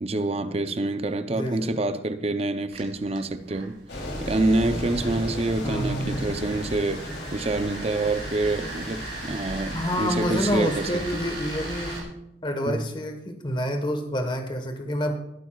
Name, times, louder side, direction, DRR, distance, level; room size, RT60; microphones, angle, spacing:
voice 1, 0.0-3.8 4.2-11.2 12.7-12.9, right 2 dB, 35° right, 0.6 m, -27 dB
voice 2, 1.3-1.7 5.6-6.3 9.7-12.1 12.4-15.1, equal, 25° left, 1.3 m, -28 dB
sound 1, 2.7-12.0, right 4 dB, 85° right, 3.7 m, -40 dB
sound 2, 3.9-12.0, left 1 dB, 80° left, 3.1 m, -35 dB
19.0 x 9.2 x 2.4 m
head